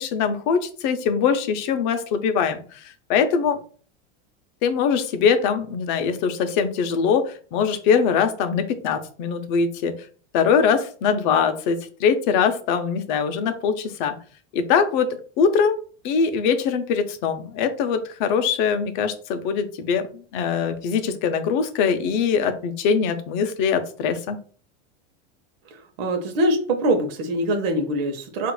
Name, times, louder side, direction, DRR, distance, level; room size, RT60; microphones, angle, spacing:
voice 1, 0.0-3.6 4.6-9.9 10.3-14.2 14.5-15.1 15.4-15.8 16.0-20.1 20.3-24.4, left 6 dB, 50° left, 8 dB, 0.6 m, -22 dB
voice 2, 25.7-28.5, right 1 dB, 65° right, 4 dB, 0.8 m, -23 dB
4.5 x 2.5 x 2.2 m, 0.41 s
supercardioid pair, 155°, 33 cm